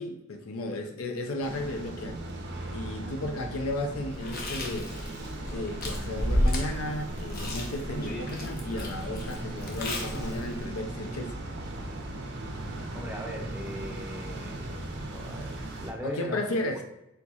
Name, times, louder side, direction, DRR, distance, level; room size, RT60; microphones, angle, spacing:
voice 1, 0.0-2.2 2.7-4.9 5.5-11.4 16.0-16.8, left 1 dB, 80° left, 5 dB, 0.5 m, -34 dB
sound 1, 1.4-15.9, right 1 dB, 50° right, 0.6 m, -38 dB
Chewing mastication, 4.1-10.7, left 1 dB, 45° left, 0.8 m, -32 dB
voice 2, 12.9-14.7 15.1-16.6, equal, 10° right, 1 dB, 0.5 m, -39 dB
4.4 x 3.9 x 2.4 m, 0.87 s
head